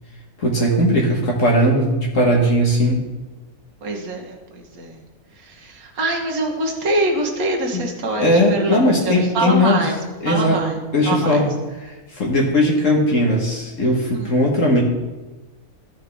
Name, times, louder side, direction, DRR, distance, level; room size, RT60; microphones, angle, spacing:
voice 1, 0.4-3.0 7.7-7.8 8.2-9.8 10.2-10.6 10.9-11.5 12.1-14.8, equal, 60° left, -1 dB, 1.6 m, -18 dB
voice 2, 3.8-5.0 5.3-9.9 10.3-10.8 11.0-11.4 14.1-14.3, right 2 dB, 70° right, 1 dB, 1.7 m, -24 dB
14.0 x 5.1 x 3.5 m, 1.2 s
omnidirectional pair, 1.6 m